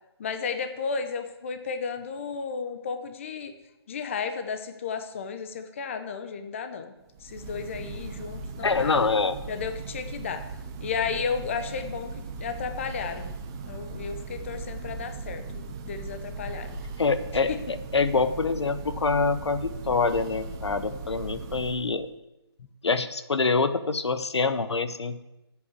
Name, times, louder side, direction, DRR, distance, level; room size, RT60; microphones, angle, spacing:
voice 1, 0.2-3.5 3.9-6.9 7.2-9.0 9.5-10.5 10.8-12.1 12.4-13.3 13.6-16.7 17.5-17.6, left 6 dB, 30° left, 9 dB, 0.7 m, -33 dB
Church bell, 7.1-22.0, right 3 dB, 10° right, 0.4 m, -38 dB
voice 2, 8.6-9.4 17.0-22.1 22.8-25.2, left 4 dB, 90° left, 12 dB, 1.0 m, -25 dB
8.7 x 8.1 x 8.2 m, 0.95 s
hypercardioid pair, 170°, 14 cm